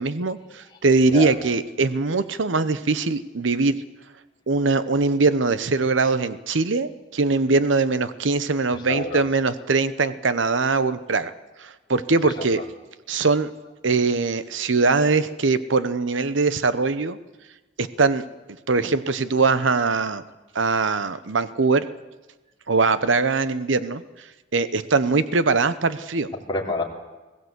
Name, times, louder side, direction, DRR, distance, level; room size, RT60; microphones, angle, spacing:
voice 1, 0.0-3.8 4.5-11.3 11.6-12.6 13.1-13.5 13.8-17.2 17.8-18.2 18.7-20.2 20.5-21.9 22.7-24.0 24.5-26.3, right 4 dB, 85° right, 14 dB, 0.9 m, -22 dB
voice 2, 8.7-9.2 12.2-12.5 26.5-26.8, left 2 dB, 25° left, -1 dB, 3.3 m, -28 dB
21.0 x 15.5 x 8.1 m, 1.2 s
head